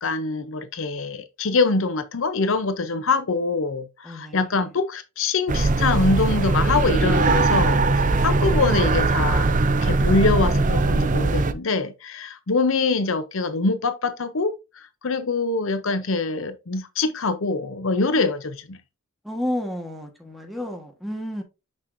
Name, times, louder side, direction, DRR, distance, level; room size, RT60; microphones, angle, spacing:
voice 1, 0.0-9.5 9.8-18.8, left 3 dB, 60° left, 0.7 m, -24 dB
voice 2, 4.1-4.4 19.2-21.4, left 1 dB, ahead, 1.4 m, -31 dB
sound 1, 5.5-11.5, right 3 dB, 35° right, 0.5 m, -20 dB
6.2 x 6.1 x 2.6 m
head